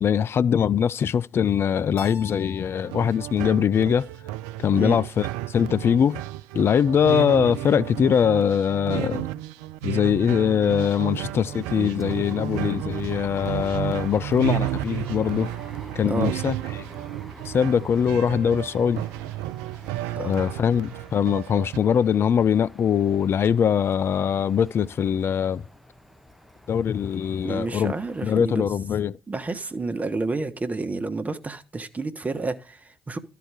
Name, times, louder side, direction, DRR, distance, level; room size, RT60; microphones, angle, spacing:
voice 1, 0.0-4.1 4.6-6.2 6.5-9.3 9.8-15.5 16.0-16.8 17.5-19.0 20.2-25.6 26.7-27.9 28.2-29.2, left 8 dB, 45° left, 0.4 m, -22 dB
Keyboard (musical), 2.0-4.8, left 4 dB, 70° left, 1.6 m, -47 dB
sound 1, 2.8-21.8, right 15 dB, 75° right, 0.4 m, -32 dB
sound 2, 10.7-28.3, left 1 dB, ahead, 1.3 m, -47 dB
voice 2, 27.4-28.6 29.3-33.2, right 3 dB, 25° right, 1.4 m, -30 dB
13.0 x 4.8 x 5.0 m
hypercardioid pair, 45°, 6 cm